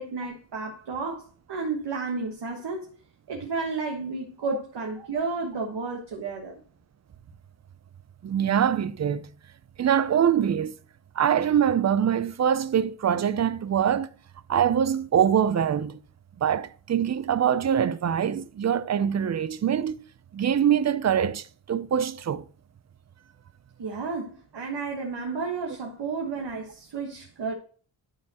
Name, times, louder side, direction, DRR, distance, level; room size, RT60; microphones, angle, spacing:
voice 1, 0.0-2.9 3.3-6.6 23.8-27.5, right 4 dB, 60° right, 1.4 m, -32 dB
voice 2, 8.2-9.3 9.8-10.7 11.2-14.1 14.5-16.0 16.4-20.0 20.3-22.4, right 9 dB, 40° right, 0.5 m, -24 dB
11.5 x 4.4 x 2.9 m
wide cardioid pair, 105°, 45 cm